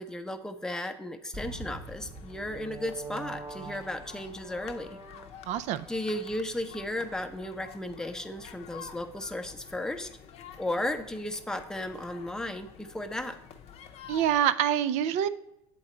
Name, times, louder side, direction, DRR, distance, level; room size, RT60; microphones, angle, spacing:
voice 1, 0.0-5.0 5.9-10.1 10.6-13.4, left 1 dB, 5° left, 6 dB, 0.7 m, -35 dB
sound 1, 1.3-5.8, right 3 dB, 20° right, 1.0 m, -43 dB
sound 2, 1.4-14.4, left 8 dB, 50° left, 0.6 m, -49 dB
voice 2, 5.5-5.9 14.1-15.3, right 10 dB, 55° right, 15 dB, 0.4 m, -26 dB
8.0 x 3.9 x 4.3 m, 0.84 s
hypercardioid pair, 80°, 14 cm